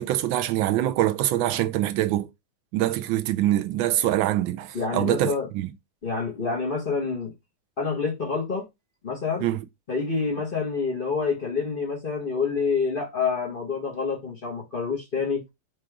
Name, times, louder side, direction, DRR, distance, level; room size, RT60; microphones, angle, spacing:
voice 1, 0.0-2.3 2.7-5.7 9.4-9.6, right 13 dB, 90° right, 1.4 m, -24 dB
voice 2, 4.7-5.5 6.0-7.3 7.8-8.7 9.0-9.5 9.9-15.4, left 5 dB, 35° left, 1.0 m, -27 dB
4.8 x 2.5 x 4.4 m
omnidirectional pair, 2.1 m